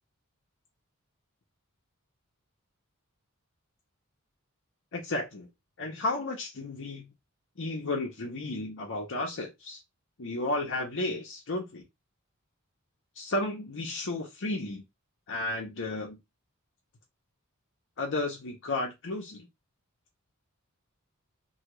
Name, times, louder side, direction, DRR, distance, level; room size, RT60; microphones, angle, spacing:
voice 1, 4.9-5.5 5.8-7.1 7.6-9.8 10.2-11.8 13.2-14.8 15.3-16.2 18.0-19.5, left 2 dB, 60° left, 0.8 m, -33 dB
2.7 x 2.4 x 3.0 m
head